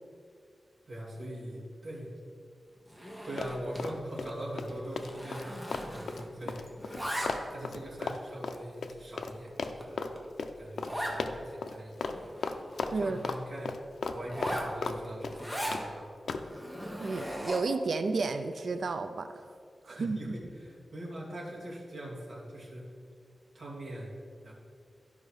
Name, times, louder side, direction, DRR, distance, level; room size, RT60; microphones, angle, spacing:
voice 1, 0.9-2.1 3.0-7.1 7.5-10.1 10.5-12.1 12.9-13.8 14.1-16.1 19.9-22.8 23.5-24.2 24.4-24.5, right 1 dB, 45° right, -5 dB, 2.5 m, -42 dB
Zipper (clothing), 2.9-3.9 4.2-4.4 4.7-6.4 6.6-7.7 8.3-8.4 9.0-9.1 9.5-9.6 9.8-9.9 10.2-10.3 10.9-11.2 11.7-11.8 12.0-13.3 14.2-15.8 16.4-17.8, equal, 5° right, 1.2 m, -38 dB
Run, 3.4-4.3 4.6-9.3 9.6-10.1 10.4-10.5 10.8-10.9 11.2-11.7 12.0-12.2 12.4-13.4 13.7-15.0 15.2-15.8 16.3-16.5, left 4 dB, 85° left, 0.5 m, -35 dB
voice 2, 17.0-19.4 19.8-20.2, right 3 dB, 65° right, 9 dB, 0.4 m, -32 dB
13.0 x 5.4 x 4.8 m, 2.3 s
wide cardioid pair, 135°, 0 cm